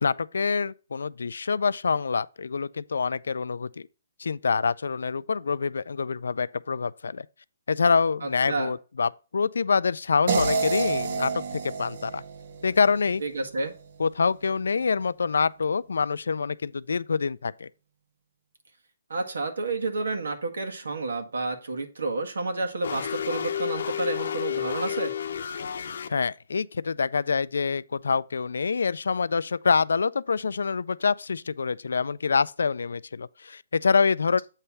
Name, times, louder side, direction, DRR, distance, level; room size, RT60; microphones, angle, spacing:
voice 1, 0.0-3.9 4.2-7.3 7.7-12.2 12.6-13.2 14.0-17.7 26.1-34.4, left 5 dB, 85° left, 0.4 m, -26 dB
voice 2, 8.2-8.7 13.2-13.7 19.1-25.1, right 3 dB, 85° right, 1.7 m, -30 dB
sound 1, 10.3-13.4, right 4 dB, 45° right, 0.7 m, -29 dB
sound 2, 22.8-26.1, left 9 dB, 60° left, 0.7 m, -31 dB
8.1 x 3.3 x 5.6 m
hypercardioid pair, 165°, 0 cm